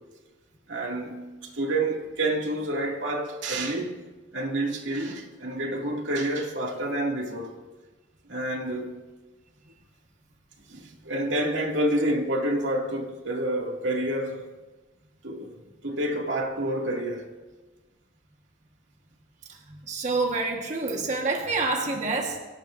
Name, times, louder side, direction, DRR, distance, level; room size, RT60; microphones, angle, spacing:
voice 1, 0.7-4.0 4.3-7.5 8.3-9.0 10.7-14.5 15.2-15.5 15.8-17.2, right 1 dB, 85° right, 2.4 m, -28 dB
voice 2, 19.7-22.4, right 3 dB, 40° right, 1.5 m, -27 dB
24.0 x 17.0 x 2.6 m
head